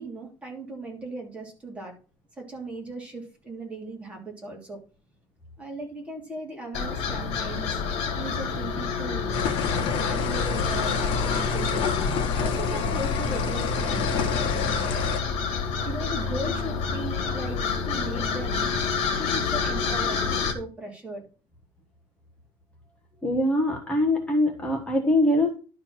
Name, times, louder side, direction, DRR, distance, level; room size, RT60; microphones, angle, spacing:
voice 1, 0.0-1.9 2.4-4.8 5.6-7.8 8.2-11.9 12.4-15.1 15.8-18.7 19.1-21.2, right 2 dB, 10° right, -1 dB, 3.0 m, -37 dB
sound 1, 6.7-20.5, left 5 dB, 75° left, 2.3 m, -29 dB
sound 2, 9.3-15.2, left 5 dB, 60° left, 1.6 m, -28 dB
voice 2, 23.2-25.5, left 1 dB, 10° left, 1 dB, 1.2 m, -23 dB
11.5 x 4.6 x 6.1 m, 0.35 s
cardioid pair, 170°, 10 cm